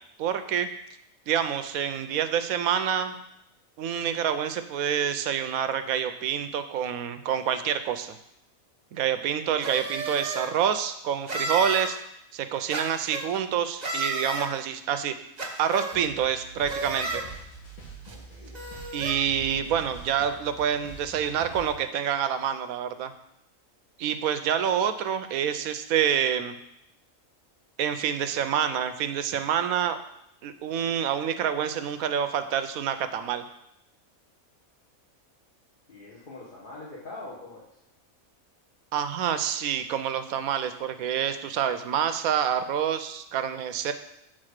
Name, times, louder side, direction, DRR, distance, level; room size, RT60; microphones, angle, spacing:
voice 1, 0.2-0.7 1.3-3.1 3.8-8.2 8.9-12.0 12.3-15.1 15.6-17.2 18.9-23.1 24.0-26.6 27.8-30.0 30.4-33.4 38.9-43.9, right 8 dB, 80° right, 10 dB, 1.1 m, -27 dB
sound 1, 9.6-10.5 11.3-11.9 12.7-13.2 13.8-14.5 15.4-16.0 16.7-17.2 18.1-18.2 18.5-19.1, right 2 dB, 35° right, 1.0 m, -32 dB
sound 2, 15.9-21.8, right 3 dB, 85° left, 2.1 m, -45 dB
voice 2, 18.1-18.5 35.9-37.7, left 2 dB, 40° left, -6 dB, 1.5 m, -43 dB
7.5 x 4.0 x 6.5 m, 0.78 s
omnidirectional pair, 1.5 m